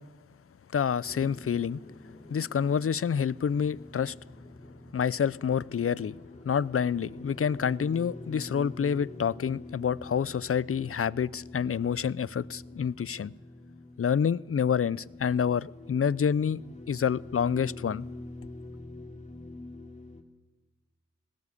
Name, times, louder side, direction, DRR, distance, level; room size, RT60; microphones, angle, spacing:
voice 1, 0.7-1.8 2.3-4.1 4.9-6.2 6.4-13.3 14.0-16.6 16.9-18.1, left 7 dB, 50° left, 0.6 m, -28 dB
sound 1, 1.0-20.2, left 2 dB, 25° left, 2.8 m, -46 dB
20.0 x 17.0 x 8.4 m
cardioid pair, 45°, 29 cm